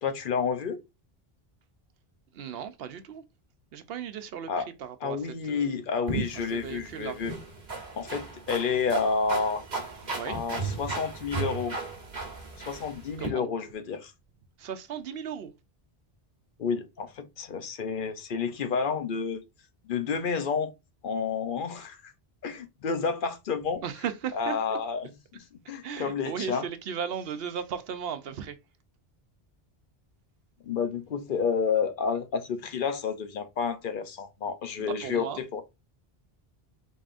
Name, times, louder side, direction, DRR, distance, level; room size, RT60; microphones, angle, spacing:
voice 1, 0.0-0.8 4.5-4.7 5.0-7.3 8.0-9.6 10.3-11.8 12.7-14.1 16.6-19.4 19.8-20.7 21.0-22.1 22.4-23.8 24.3-26.7 30.6-35.6, left 5 dB, 60° left, 0.8 m, -30 dB
voice 2, 2.3-3.2 3.7-5.8 6.5-7.2 10.1-10.4 13.2-13.5 14.6-15.5 23.8-24.8 25.8-28.6 34.8-35.4, right 8 dB, 75° right, 0.8 m, -36 dB
sound 1, 6.1-13.3, right 3 dB, 45° right, 1.2 m, -36 dB
4.0 x 3.7 x 2.5 m
omnidirectional pair, 1.0 m